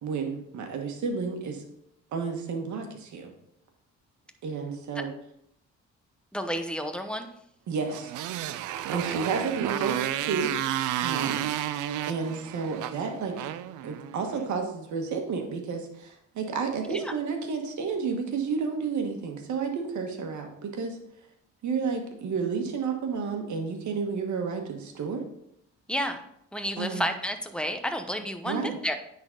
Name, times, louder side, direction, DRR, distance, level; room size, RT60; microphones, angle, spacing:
voice 1, 0.0-1.6 2.1-3.3 4.4-5.1 7.7-8.1 8.9-10.5 11.0-11.5 12.1-13.5 13.8-21.0 21.6-25.2 26.8-27.1 28.4-28.8, right 5 dB, 70° right, 4 dB, 1.4 m, -31 dB
voice 2, 6.3-7.3 16.8-17.1 25.9-26.2 26.5-28.9, equal, 5° left, 6 dB, 0.8 m, -31 dB
Motorcycle, 7.9-14.4, right 12 dB, 90° right, 0.5 m, -32 dB
9.6 x 4.1 x 3.8 m, 0.75 s
cardioid pair, 90°, 30 cm